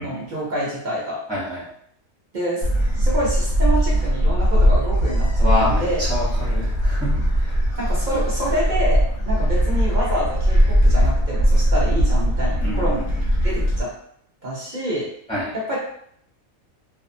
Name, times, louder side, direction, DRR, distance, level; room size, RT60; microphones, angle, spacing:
voice 1, 0.0-1.2 2.3-2.7 3.0-6.0 7.8-13.1 13.4-13.9 14.4-15.1 15.5-15.8, equal, 45° right, -6 dB, 0.6 m, -27 dB
voice 2, 1.3-1.6 5.4-7.6 12.6-13.0 15.3-15.5, left 1 dB, 5° left, -10 dB, 0.5 m, -27 dB
Gull seagull, 2.6-13.8, equal, 45° left, 0.7 m, -19 dB
2.6 x 2.4 x 2.6 m, 0.67 s
omnidirectional pair, 1.5 m